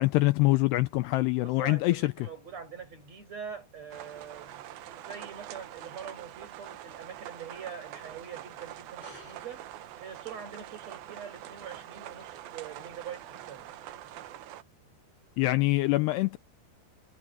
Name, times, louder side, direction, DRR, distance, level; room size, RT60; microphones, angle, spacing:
voice 1, 0.0-2.1 15.4-16.4, left 20 dB, 90° left, 2.3 m, -24 dB
voice 2, 1.4-9.6 10.0-13.7, right 7 dB, 35° right, 7.1 m, -44 dB
sound 1, 3.9-14.6, right 13 dB, 75° right, 2.3 m, -45 dB
sound 2, 9.0-14.0, left 3 dB, 25° left, 7.5 m, -59 dB
omnidirectional pair, 5.4 m